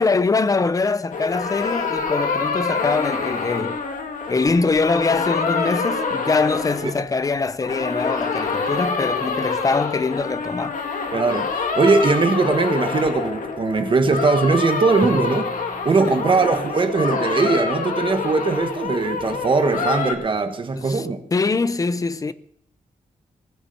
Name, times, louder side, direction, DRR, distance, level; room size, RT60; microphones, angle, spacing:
voice 1, 0.0-3.8 4.3-10.8 16.1-16.2 20.8-22.3, left 4 dB, 25° left, 0.6 m, -23 dB
sound 1, 1.1-7.4 7.6-20.1, left 4 dB, 70° left, 2.2 m, -26 dB
voice 2, 11.1-15.5 15.8-21.2, right 4 dB, 35° right, 1.4 m, -20 dB
Drum, 15.0-17.4, left 1 dB, ahead, 1.1 m, -38 dB
20.5 x 7.3 x 6.8 m
wide cardioid pair, 155°, 14 cm